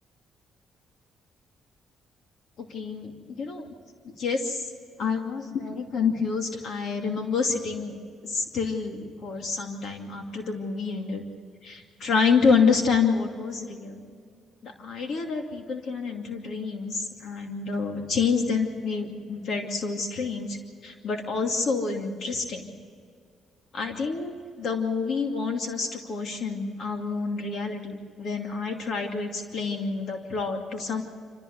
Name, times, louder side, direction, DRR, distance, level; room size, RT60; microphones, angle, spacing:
voice 1, 2.7-3.6 4.1-4.7 5.0-8.0 8.2-11.2 11.6-14.0 14.6-22.7 23.7-31.0, left 5 dB, 65° left, 3 dB, 2.5 m, -28 dB
27.0 x 14.5 x 8.0 m, 2.2 s
cardioid pair, 90°, 0 cm